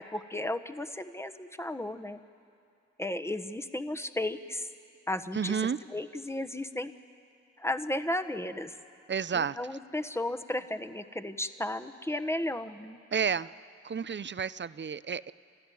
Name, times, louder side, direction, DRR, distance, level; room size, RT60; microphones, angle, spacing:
voice 1, 0.0-2.2 3.0-4.7 5.1-6.9 7.6-8.7 9.3-13.0, left 1 dB, 10° left, 9 dB, 1.2 m, -34 dB
voice 2, 5.3-5.8 9.1-9.6 13.1-13.5 13.8-15.3, right 6 dB, 40° right, 17 dB, 0.6 m, -31 dB
29.5 x 12.5 x 9.3 m, 2.5 s
supercardioid pair, 40°, 29 cm